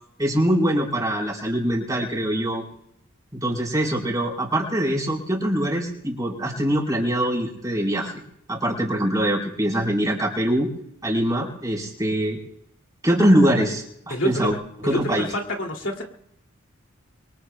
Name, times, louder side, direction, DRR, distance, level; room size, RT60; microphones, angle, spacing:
voice 1, 0.2-2.6 3.3-8.1 8.5-10.7 11.0-12.4 13.0-14.5 14.8-15.3, right 1 dB, 20° right, -2 dB, 4.2 m, -23 dB
voice 2, 14.1-14.6 14.8-16.0, left 1 dB, 65° left, 1 dB, 2.5 m, -27 dB
26.5 x 24.0 x 2.3 m, 0.74 s
head